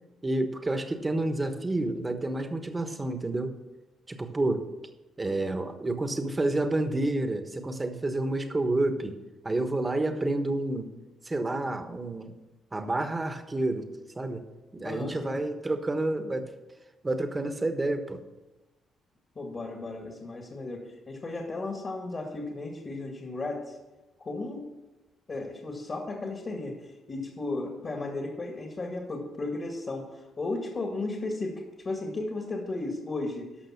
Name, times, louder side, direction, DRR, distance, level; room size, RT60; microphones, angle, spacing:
voice 1, 0.2-3.6 4.1-4.7 5.2-9.2 9.4-10.9 11.2-12.3 12.7-13.9 14.2-14.4 14.7-16.5 17.0-18.2, right 2 dB, 20° right, 8 dB, 1.2 m, -29 dB
voice 2, 14.8-15.5 19.4-23.8 24.2-24.7 25.3-33.5, left 2 dB, 40° left, 2 dB, 2.0 m, -35 dB
13.5 x 5.7 x 5.8 m, 1.1 s
cardioid pair, 90°, 0 cm